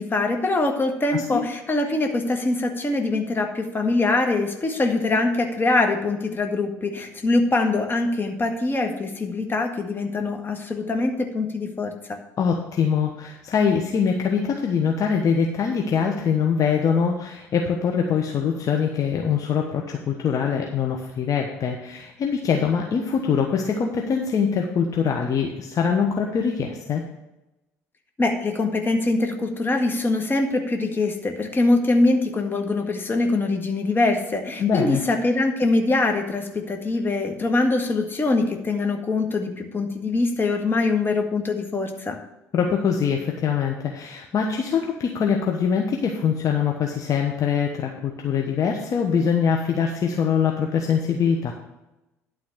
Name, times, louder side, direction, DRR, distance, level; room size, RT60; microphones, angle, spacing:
voice 1, 0.0-12.2 28.2-42.2, left 2 dB, 25° left, 4 dB, 1.8 m, -23 dB
voice 2, 1.1-1.4 12.4-27.0 34.6-35.0 42.5-51.5, left 6 dB, 45° left, 1 dB, 1.2 m, -23 dB
11.5 x 4.0 x 7.9 m, 0.94 s
hypercardioid pair, 60°, 8 cm